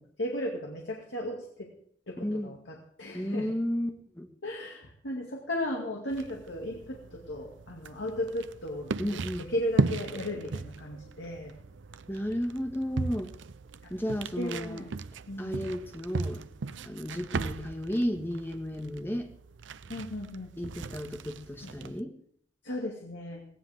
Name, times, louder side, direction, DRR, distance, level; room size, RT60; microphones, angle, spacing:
voice 1, 0.0-1.7 2.1-3.5 4.4-9.2 9.5-11.5 13.8-13.9 14.4-14.9 15.3-15.6 19.9-20.6 21.6-21.9 22.6-23.5, left 1 dB, 75° left, 0 dB, 2.5 m, -36 dB
voice 2, 3.1-4.3 9.0-9.5 12.1-13.3 13.9-14.8 15.4-16.4 16.9-19.3 20.6-22.1, equal, 10° left, 4 dB, 1.7 m, -33 dB
sound 1, 6.1-22.0, right 3 dB, 80° right, 0.6 m, -37 dB
17.5 x 17.0 x 3.7 m, 0.64 s
head